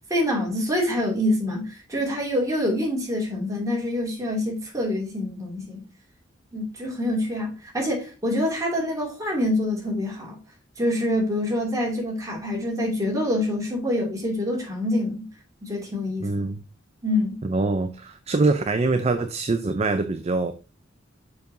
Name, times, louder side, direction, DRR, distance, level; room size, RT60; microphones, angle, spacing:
voice 1, 0.1-5.8 6.5-10.4 10.8-15.3 15.6-16.4 17.0-17.4, left 1 dB, 15° right, 2.6 m, -26 dB
voice 2, 16.2-16.6 17.4-20.5, right 3 dB, 35° right, 0.5 m, -24 dB
6.8 x 5.3 x 2.7 m
head